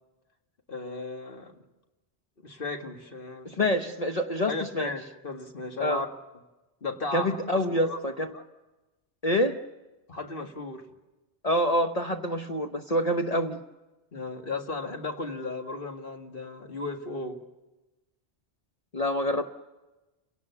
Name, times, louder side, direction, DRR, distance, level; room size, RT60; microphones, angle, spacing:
voice 1, 0.7-1.6 2.4-3.7 4.5-6.1 6.8-8.0 8.3-8.4 10.1-10.8 14.1-17.4, left 3 dB, 50° left, 3 dB, 2.0 m, -35 dB
voice 2, 3.4-4.9 5.8-6.0 7.1-8.3 9.2-9.6 11.4-13.6 18.9-19.5, equal, 35° left, 4 dB, 1.0 m, -26 dB
30.0 x 17.5 x 7.1 m, 1.1 s
omnidirectional pair, 1.1 m